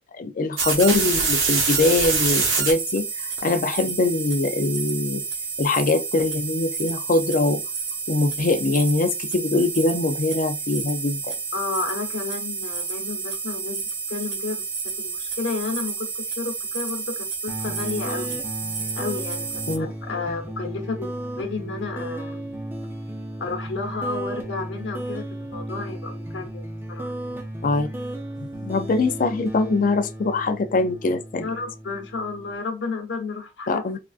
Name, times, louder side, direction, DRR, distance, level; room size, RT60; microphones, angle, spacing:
voice 1, 0.2-5.2 5.6-7.6 8.1-11.3 19.7-19.9 27.6-27.9 28.4-31.5 33.7-34.0, left 3 dB, 45° left, 0.4 m, -23 dB
sound 1, 0.6-19.8, right 5 dB, 85° right, 1.1 m, -28 dB
voice 2, 11.5-13.8 14.1-18.4 18.9-22.5 23.4-27.1 31.4-33.8, left 4 dB, 80° left, 1.0 m, -32 dB
sound 2, 17.5-32.5, right 1 dB, 10° right, 0.5 m, -34 dB
3.4 x 2.4 x 2.4 m
head